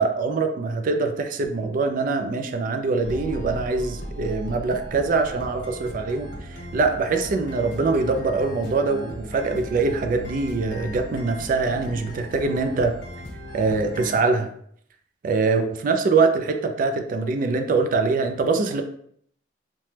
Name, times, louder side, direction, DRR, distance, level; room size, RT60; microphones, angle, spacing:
voice 1, 0.0-12.9 13.5-14.5 15.2-18.8, right 4 dB, 45° right, 5 dB, 0.3 m, -23 dB
sound 1, 3.0-14.2, equal, 80° left, 0.9 m, -37 dB
2.8 x 2.1 x 3.2 m, 0.66 s
head